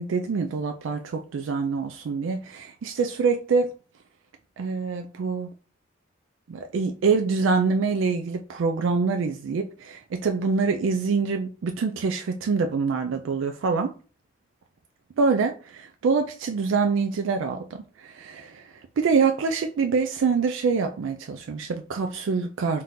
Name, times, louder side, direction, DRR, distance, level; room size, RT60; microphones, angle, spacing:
voice 1, 0.0-3.7 4.6-5.5 6.5-13.9 15.2-18.7 19.0-22.8, right 4 dB, 85° right, 0.4 m, -25 dB
3.6 x 2.7 x 3.7 m
head